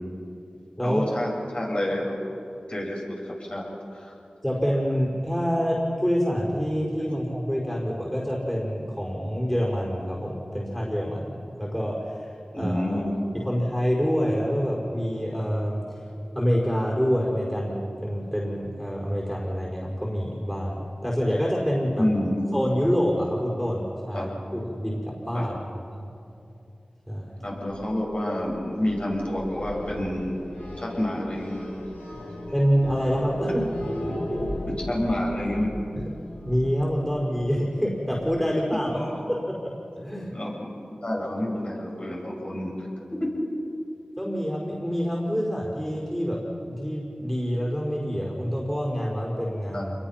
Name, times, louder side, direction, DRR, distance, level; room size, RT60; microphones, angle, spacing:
voice 1, 0.8-2.2 2.7-3.6 3.9-4.1 12.5-13.1 22.0-22.4 24.1-24.3 25.3-25.4 27.4-30.4 30.8-31.7 34.7-35.7 38.9-39.2 40.3-40.5 41.0-42.7 49.7-49.8, left 1 dB, 40° left, -3 dB, 7.7 m, -28 dB
voice 2, 4.4-12.3 12.5-13.1 13.4-15.8 16.4-22.1 22.5-26.1 27.1-27.4 32.5-33.6 34.4-34.5 36.5-39.0 39.3-40.3 44.2-49.9, equal, 5° left, -3 dB, 5.2 m, -27 dB
sound 1, 27.4-38.3, equal, 85° left, 5.3 m, -36 dB
28.0 x 22.0 x 6.0 m, 2.7 s
wide cardioid pair, 50°, 3 cm